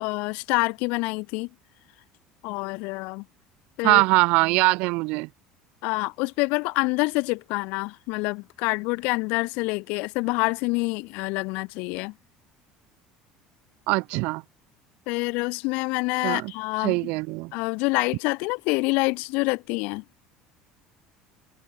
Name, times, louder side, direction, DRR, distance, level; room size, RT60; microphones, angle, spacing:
voice 1, 0.0-1.5 2.4-3.2 3.8-4.0 5.8-12.1 15.1-17.0 17.5-20.0, left 27 dB, 70° left, 1.4 m, -26 dB
voice 2, 3.8-5.3 13.9-14.4 16.2-16.5 16.8-17.5, right 25 dB, 70° right, 2.4 m, -22 dB
cardioid pair, 140°, 2 cm